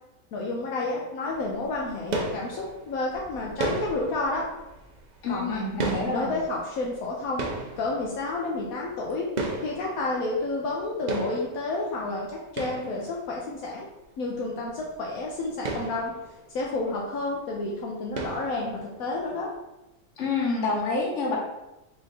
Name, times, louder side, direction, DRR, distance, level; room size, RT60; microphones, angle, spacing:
voice 1, 0.3-4.5 5.3-5.6 6.1-7.5 7.8-9.3 9.6-13.9 14.2-16.1 16.5-19.5, left 2 dB, 80° left, -2 dB, 1.1 m, -30 dB
sound 1, 1.3-10.8 11.1-13.6 14.0-14.1 14.4-14.5 14.8-14.9 15.4-17.2 17.5-17.7 18.2-19.2, right 2 dB, 60° right, 0.4 m, -35 dB
voice 2, 5.2-6.3 20.2-21.4, left 3 dB, 60° left, -2 dB, 1.3 m, -27 dB
4.4 x 2.5 x 4.0 m, 0.94 s
omnidirectional pair, 1.5 m